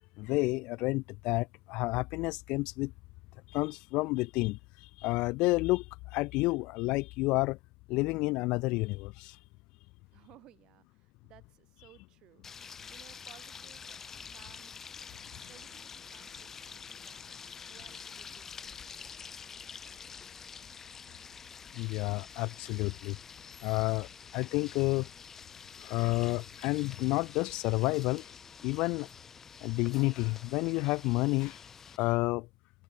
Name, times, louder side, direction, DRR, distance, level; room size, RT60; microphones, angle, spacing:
voice 1, 0.2-2.9 3.5-7.6 7.9-9.4 21.7-23.2 23.6-25.1 25.8-28.3 28.6-29.1 29.6-31.6 32.0-32.5, left 23 dB, 45° left, 0.3 m, -30 dB
voice 2, 10.1-14.1 14.3-14.7 15.5-20.4, right 15 dB, 35° right, 2.9 m, -61 dB
sound 1, 12.4-32.0, left 6 dB, 15° left, 1.4 m, -48 dB
supercardioid pair, 150°, 2 cm